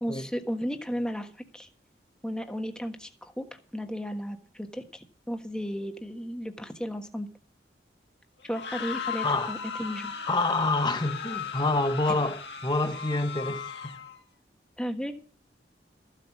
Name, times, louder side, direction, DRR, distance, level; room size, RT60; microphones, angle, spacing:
voice 1, 0.0-1.7 2.2-7.3 8.4-10.1 14.8-15.2, equal, 5° left, 1.4 m, -34 dB
sound 1, 8.4-14.2, left 6 dB, 75° left, 1.5 m, -37 dB
voice 2, 9.2-9.5 10.3-13.9, left 2 dB, 25° left, 1.1 m, -27 dB
14.5 x 8.1 x 6.0 m
head